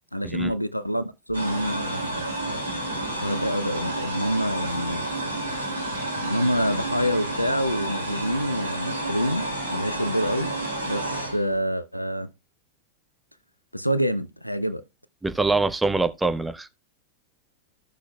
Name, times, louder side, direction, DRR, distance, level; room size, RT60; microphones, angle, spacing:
voice 1, 0.1-2.2 3.1-5.1 6.2-10.5 10.8-12.3 13.7-14.8, equal, 90° left, 0.6 m, -27 dB
sound 1, 1.3-11.6, right 1 dB, 80° right, 2.4 m, -30 dB
voice 2, 15.2-16.7, right 3 dB, 10° right, 0.8 m, -24 dB
14.5 x 6.1 x 2.3 m
figure-of-eight pair, 90°, 0 cm